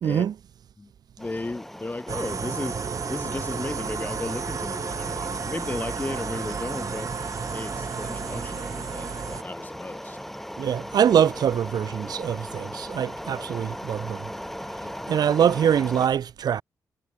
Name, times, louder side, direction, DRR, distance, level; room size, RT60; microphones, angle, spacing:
voice 1, 0.0-0.3 10.6-14.3 15.1-16.6, right 9 dB, 70° right, 0.4 m, -23 dB
voice 2, 1.2-2.8 3.1-10.2 14.8-15.1, left 2 dB, 25° left, 4.0 m, -35 dB
sound 1, 1.2-16.1, equal, 5° left, 4.9 m, -38 dB
sound 2, 2.1-9.4, right 5 dB, 50° right, 0.9 m, -32 dB
cardioid pair, 70°, 7 cm